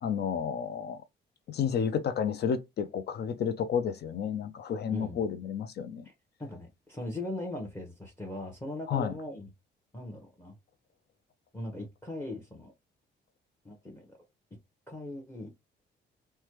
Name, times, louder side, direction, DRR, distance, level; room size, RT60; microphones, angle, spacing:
voice 1, 0.0-1.0 1.5-6.0 8.9-9.1, left 7 dB, 55° left, 0.4 m, -31 dB
voice 2, 4.9-5.3 6.0-6.1 6.4-9.5 9.9-10.6 11.5-12.7 13.6-14.2 14.9-15.5, left 1 dB, 10° left, 0.9 m, -39 dB
3.2 x 2.2 x 2.9 m
cardioid pair, 90°, 20 cm